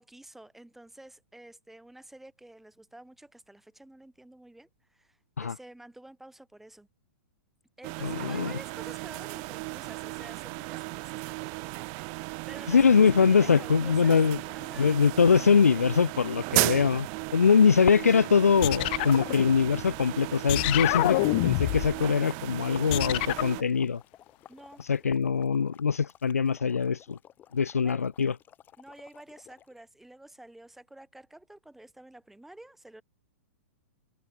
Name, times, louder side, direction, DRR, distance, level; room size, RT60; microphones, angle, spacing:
voice 1, 0.0-6.9 7.8-13.0 13.3-14.2 14.5-15.0 24.5-24.8 27.8-28.0 28.8-33.0, right 1 dB, 5° right, 7.0 m, -50 dB
sound 1, 7.8-23.6, right 40 dB or more, 35° right, 2.0 m, -35 dB
voice 2, 8.0-8.5 12.7-14.4 14.8-17.1 17.3-24.0 24.9-27.2 27.5-28.3, left 6 dB, 70° left, 0.8 m, -23 dB
sound 2, 13.4-29.8, left 10 dB, 20° left, 4.6 m, -55 dB
sound 3, 18.6-20.0 20.5-22.0 22.9-23.6, left 24 dB, 40° left, 0.6 m, -27 dB
figure-of-eight pair, 105°, 8 cm